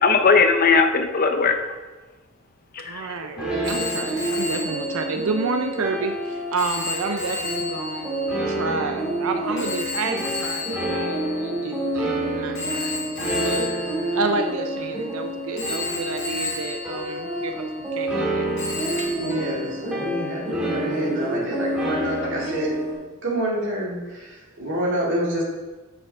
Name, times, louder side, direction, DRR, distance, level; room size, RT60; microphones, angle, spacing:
voice 1, 0.0-1.6 2.7-3.5, left 4 dB, 45° left, 6 dB, 0.7 m, -19 dB
voice 2, 2.8-13.0 13.3-13.7 14.1-18.5, right 4 dB, 85° right, 6 dB, 0.5 m, -30 dB
sound 1, 3.4-22.9, right 1 dB, 5° right, 2.2 m, -28 dB
Telephone, 3.6-12.0 12.6-15.1 15.6-18.3 18.6-20.3, left 3 dB, 60° left, 2.0 m, -34 dB
voice 3, 19.2-22.7 23.2-25.4, equal, 60° right, -4 dB, 2.5 m, -27 dB
8.9 x 6.9 x 3.5 m, 1.2 s
head